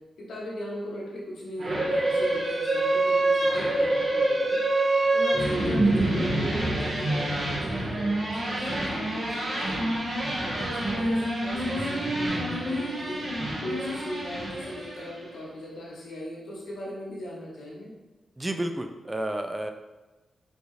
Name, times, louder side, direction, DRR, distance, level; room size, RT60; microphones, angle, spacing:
voice 1, 0.2-4.6 5.1-9.9 10.5-13.3 13.6-17.9, equal, 90° left, -4 dB, 1.2 m, -38 dB
sound 1, 1.6-15.2, right 1 dB, 55° right, 1.5 m, -26 dB
voice 2, 18.4-19.7, right 1 dB, 15° right, 5 dB, 0.3 m, -31 dB
5.0 x 2.5 x 3.2 m, 1.1 s
cardioid pair, 95°, 0 cm